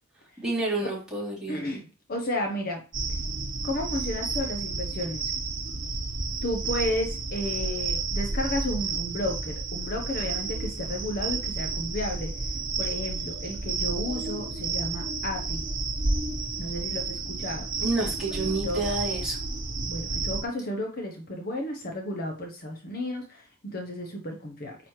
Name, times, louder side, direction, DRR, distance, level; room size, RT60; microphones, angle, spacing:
voice 1, 0.4-1.6 17.8-19.4, right 2 dB, 5° right, -8 dB, 3.4 m, -29 dB
voice 2, 1.5-2.8 3.6-5.3 6.4-12.3 12.8-15.6 16.6-17.6 18.4-18.9 19.9-24.8, left 1 dB, 45° left, 2 dB, 1.0 m, -32 dB
sound 1, 2.9-20.4, right 3 dB, 40° right, 1.2 m, -31 dB
9.0 x 4.1 x 3.2 m, 0.35 s
head